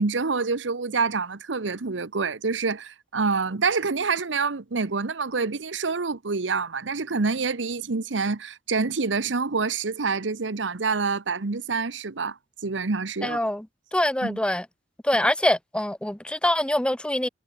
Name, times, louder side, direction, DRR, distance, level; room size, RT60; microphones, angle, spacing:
voice 1, 0.0-12.4 12.6-13.5 14.2-14.4, right 4 dB, 85° right, 1.0 m, -27 dB
voice 2, 13.2-13.6 13.9-14.6 15.0-17.3, left 1 dB, 5° left, 0.9 m, -24 dB
head